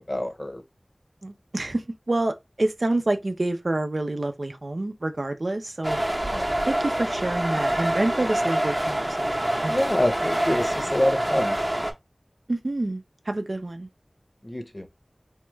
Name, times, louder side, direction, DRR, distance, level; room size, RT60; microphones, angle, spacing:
voice 1, 0.1-0.6 6.3-6.6 9.7-11.6 14.4-14.9, left 1 dB, 40° left, 0.8 m, -26 dB
voice 2, 1.2-6.0 6.7-10.0 12.5-13.9, right 2 dB, 70° right, 0.5 m, -28 dB
sound 1, 5.8-11.9, right 1 dB, 30° right, 0.8 m, -26 dB
3.5 x 2.3 x 3.0 m
wide cardioid pair, 45°, 0 cm